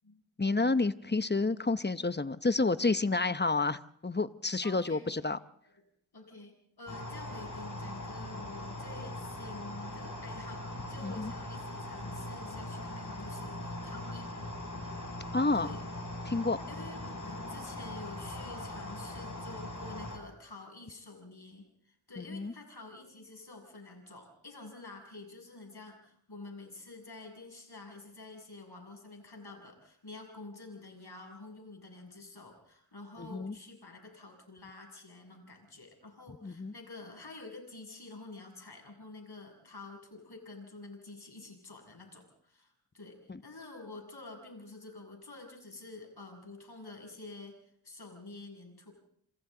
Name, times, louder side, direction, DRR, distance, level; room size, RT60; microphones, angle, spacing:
voice 1, 0.4-5.4 11.0-11.3 15.3-15.7 16.2-16.6 22.2-22.5 33.2-33.5 36.4-36.7 43.3-43.4, left 3 dB, 20° left, 13 dB, 0.8 m, -30 dB
voice 2, 4.6-5.3 5.6-5.7 6.1-14.3 15.5-15.8 16.7-47.6 47.8-48.9, left 2 dB, 55° left, 2 dB, 7.0 m, -49 dB
sound 1, 6.9-20.2, left 1 dB, 40° left, 6.8 m, -41 dB
27.5 x 27.0 x 3.9 m, 0.69 s
wide cardioid pair, 55°, 47 cm